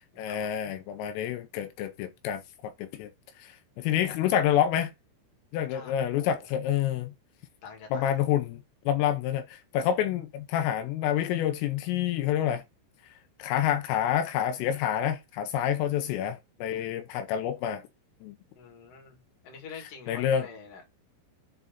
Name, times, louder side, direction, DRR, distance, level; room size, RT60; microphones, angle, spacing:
voice 1, 0.2-3.1 3.4-4.9 5.5-7.1 7.9-8.6 8.9-12.6 13.4-17.8 18.2-18.3 19.7-20.5, left 10 dB, 85° left, 3.5 m, -28 dB
voice 2, 5.6-6.5 7.6-8.2 18.6-19.2 19.4-20.9, left 5 dB, 45° left, 3.5 m, -46 dB
10.5 x 3.9 x 4.1 m
omnidirectional pair, 5.9 m